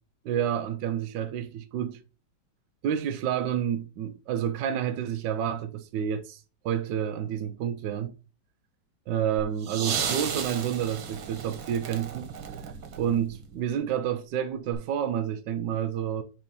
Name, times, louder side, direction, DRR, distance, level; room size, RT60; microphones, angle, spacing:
voice 1, 0.2-2.0 2.8-8.1 9.1-12.3 13.0-16.2, right 9 dB, 70° right, 1.3 m, -29 dB
sound 1, 9.6-13.6 14.7-14.8, right 7 dB, 90° right, 1.9 m, -34 dB
5.7 x 4.3 x 5.4 m
omnidirectional pair, 2.1 m